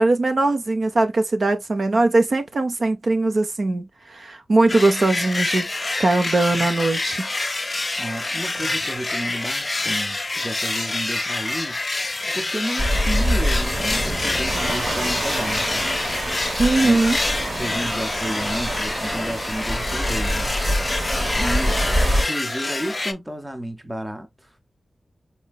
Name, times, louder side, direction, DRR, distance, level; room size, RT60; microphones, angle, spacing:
voice 1, 0.0-5.7 6.0-7.3 16.6-17.2, right 2 dB, 55° right, 0.6 m, -20 dB
sound 1, 4.7-23.1, left 2 dB, 30° left, 0.4 m, -27 dB
voice 2, 8.0-11.8 12.3-15.9 16.8-17.0 17.6-20.5 21.1-21.8 22.2-24.5, right 1 dB, 10° right, 0.6 m, -32 dB
sound 2, 12.8-22.2, equal, 35° right, 1.1 m, -26 dB
sound 3, 14.4-21.5, right 2 dB, 85° right, 1.8 m, -32 dB
4.3 x 2.8 x 2.3 m
wide cardioid pair, 105°, 0 cm